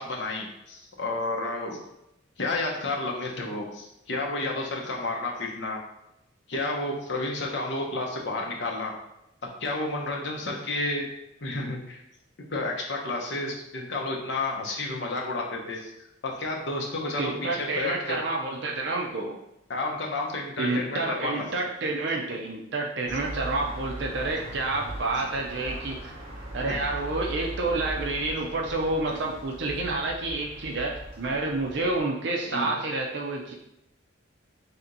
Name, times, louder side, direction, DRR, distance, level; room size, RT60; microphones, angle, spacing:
voice 1, 0.0-1.8 2.4-5.8 6.5-8.9 9.6-11.1 11.4-12.0 12.4-15.9 16.2-18.2 19.7-21.4 23.1-23.2 26.7-26.8 32.5-32.7, left 2 dB, 60° left, -1 dB, 0.8 m, -31 dB
voice 2, 17.2-19.4 20.6-26.1 26.5-33.6, right 2 dB, 60° right, 0 dB, 0.5 m, -29 dB
sound 1, 23.0-32.0, right 1 dB, 30° right, 1.1 m, -39 dB
3.4 x 2.8 x 3.8 m, 0.85 s
head